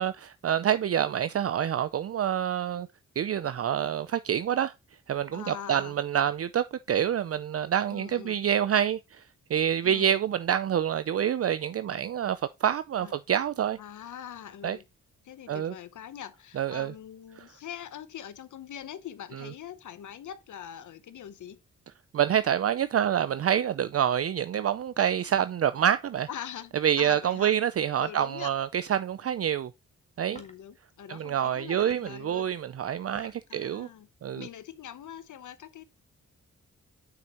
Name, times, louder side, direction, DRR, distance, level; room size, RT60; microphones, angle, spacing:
voice 1, 0.0-2.9 3.2-4.7 5.1-9.2 9.5-13.8 14.6-14.8 15.5-15.7 16.6-16.9 17.4-17.5 22.1-26.3 26.8-29.7 30.2-30.4 31.1-33.9 34.2-34.5, right 9 dB, 50° right, 0.5 m, -27 dB
voice 2, 5.3-5.9 7.9-8.4 9.8-10.2 13.0-13.1 13.8-14.8 15.2-21.6 26.3-27.5 28.0-28.6 30.3-32.5 33.2-34.1 34.4-35.8, left 9 dB, 80° left, 0.8 m, -43 dB
sound 1, 30.3-30.7 31.8-32.3 32.9-33.5, left 2 dB, 20° left, 1.7 m, -51 dB
7.3 x 6.0 x 2.9 m
cardioid pair, 60°, 30 cm